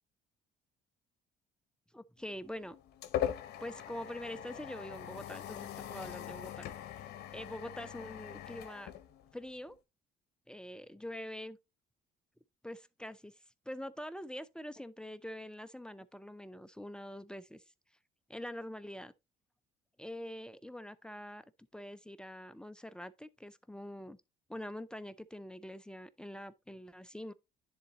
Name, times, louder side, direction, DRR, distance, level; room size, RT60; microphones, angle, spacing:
voice 1, 1.9-2.8 3.6-6.7 7.3-8.9 9.3-9.8 10.5-11.6 12.6-13.3 13.7-17.6 18.3-19.1 20.0-21.4 21.7-24.2 24.5-27.3, left 1 dB, 5° left, 0.4 m, -44 dB
sound 1, 2.3-9.7, left 10 dB, 70° left, 0.8 m, -41 dB
10.5 x 3.9 x 2.9 m
cardioid pair, 110°, 17 cm